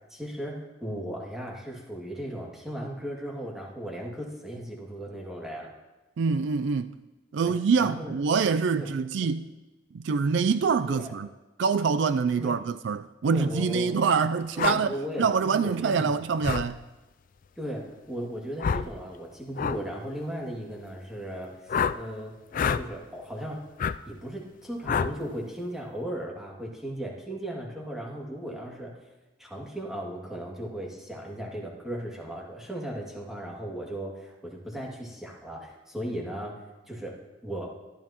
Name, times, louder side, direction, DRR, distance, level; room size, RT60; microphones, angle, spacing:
voice 1, 0.1-5.7 7.4-8.1 8.7-9.3 10.9-11.1 12.4-12.6 13.2-14.2 14.5-16.2 17.6-22.3 22.7-23.7 24.1-29.0 29.4-36.6 36.9-37.2 37.4-37.7, right 1 dB, 5° right, 2.2 m, -36 dB
voice 2, 6.2-6.9 7.3-9.5 9.9-11.3 11.6-16.8, right 5 dB, 65° right, 0.4 m, -25 dB
sound 1, 14.6-14.8 16.4-16.7 18.6-18.9 19.6-19.8 21.7-22.0 22.5-22.8 23.8-24.0 24.9-25.1, left 6 dB, 45° left, 0.4 m, -26 dB
23.0 x 13.0 x 3.0 m
head